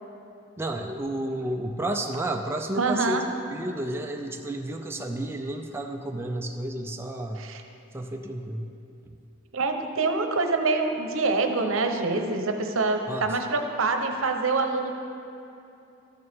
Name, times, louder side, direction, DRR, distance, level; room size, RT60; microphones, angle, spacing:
voice 1, 0.6-7.4 7.9-8.7 13.1-13.4, right 1 dB, 10° right, 3 dB, 0.4 m, -31 dB
voice 2, 2.8-3.2 7.4-7.6 9.5-14.9, right 3 dB, 80° right, 5 dB, 0.8 m, -25 dB
13.5 x 6.7 x 3.5 m, 2.7 s
head